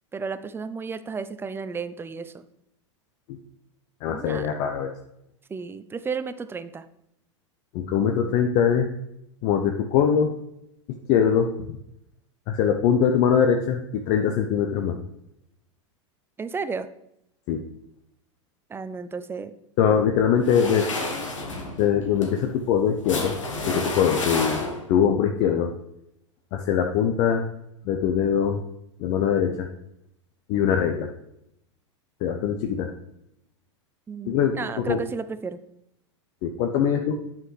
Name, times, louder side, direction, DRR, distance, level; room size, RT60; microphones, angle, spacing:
voice 1, 0.1-2.5 4.1-4.5 5.5-6.8 16.4-16.9 18.7-19.5 34.1-35.6, right 5 dB, 15° right, 12 dB, 0.5 m, -33 dB
voice 2, 4.0-4.9 7.7-8.9 9.4-10.3 10.9-11.8 12.5-15.0 17.5-17.6 19.8-20.9 21.8-23.4 23.6-24.6 24.9-25.7 26.5-27.5 27.8-28.6 29.0-29.7 30.5-31.1 32.2-32.9 34.3-35.0 36.4-37.2, left 8 dB, 50° left, 4 dB, 0.7 m, -22 dB
sound 1, 20.4-25.1, left 2 dB, 85° left, 1.3 m, -30 dB
9.0 x 5.9 x 3.3 m, 0.79 s
hypercardioid pair, 95°, 16 cm